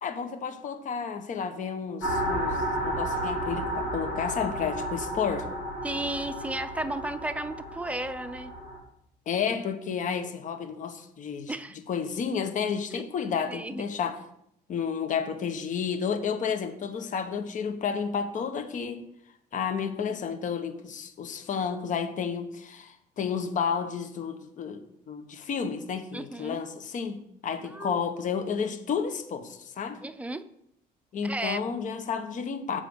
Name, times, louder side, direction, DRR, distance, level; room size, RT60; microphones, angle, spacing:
voice 1, 0.0-5.5 9.3-11.5 11.9-14.2 14.7-19.0 19.5-30.0 31.1-32.8, left 6 dB, 50° left, 8 dB, 1.0 m, -31 dB
sound 1, 2.0-8.8, right 1 dB, 85° left, 2.7 m, -32 dB
voice 2, 5.8-8.5 11.5-11.8 12.9-13.0 13.5-13.8 26.1-26.6 27.7-28.0 30.0-30.4 31.2-31.6, right 1 dB, 10° right, 10 dB, 0.6 m, -34 dB
7.4 x 5.0 x 6.8 m, 0.75 s
cardioid pair, 110°, 17 cm